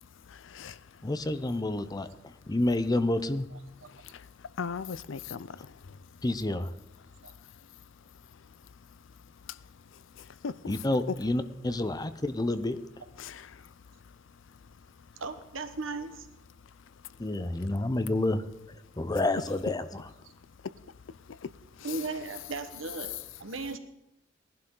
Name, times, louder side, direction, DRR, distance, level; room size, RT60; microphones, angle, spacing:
voice 1, 0.0-1.1 3.9-6.2 7.0-10.8 13.2-15.2 16.6-17.3 20.3-22.1 23.1-23.2, left 6 dB, 65° left, 17 dB, 0.5 m, -43 dB
voice 2, 1.0-2.1 2.5-3.5 6.2-6.7 10.7-12.8 17.2-20.0, left 2 dB, 20° left, 12 dB, 0.6 m, -29 dB
voice 3, 15.2-16.3 21.8-23.8, right 3 dB, 75° right, 8 dB, 1.3 m, -36 dB
18.0 x 11.5 x 3.8 m, 0.85 s
head